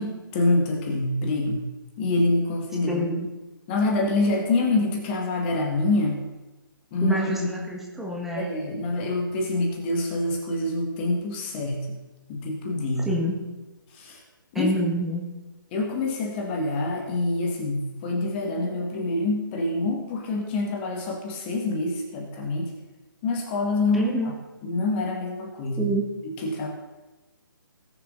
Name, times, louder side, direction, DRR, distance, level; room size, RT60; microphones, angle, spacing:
voice 1, 0.0-1.6 2.0-3.0 3.7-6.2 6.9-7.7 8.3-11.9 12.3-13.1 13.9-14.2 14.5-14.7 15.7-22.7 23.2-24.3 24.6-25.9 26.4-26.7, left 2 dB, 30° left, 1 dB, 2.0 m, -26 dB
voice 2, 2.9-3.3 7.0-8.5 13.0-13.4 14.5-15.2 23.9-24.3 25.8-26.0, right 1 dB, 5° right, -3 dB, 1.7 m, -27 dB
19.0 x 7.0 x 4.1 m, 1.1 s
hypercardioid pair, 145°, 12 cm